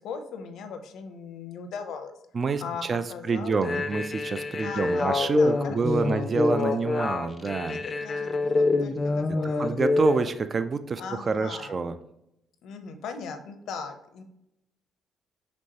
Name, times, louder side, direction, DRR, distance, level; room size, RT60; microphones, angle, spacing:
voice 1, 0.0-2.1 2.6-3.6 4.6-6.4 6.7-6.8 7.7-9.8 11.0-11.8 12.6-14.2, left 5 dB, 80° left, 7 dB, 0.6 m, -39 dB
voice 2, 2.3-7.8 9.6-12.0, right 4 dB, 40° right, 10 dB, 0.3 m, -28 dB
sound 1, 3.5-10.2, left 3 dB, 35° left, 0.4 m, -26 dB
5.2 x 3.1 x 2.8 m, 0.82 s
cardioid pair, 90°, 0 cm